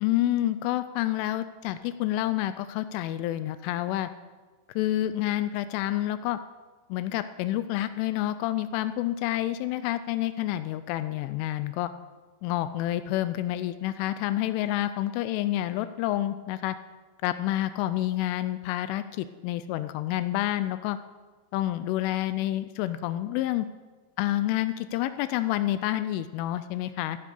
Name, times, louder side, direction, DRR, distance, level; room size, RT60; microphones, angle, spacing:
voice 1, 0.0-4.1 4.8-6.4 6.9-11.9 12.4-16.8 17.2-21.0 21.5-23.7 24.2-27.2, left 14 dB, 85° left, 13 dB, 2.9 m, -28 dB
14.5 x 10.0 x 6.8 m, 1.3 s
omnidirectional pair, 5.8 m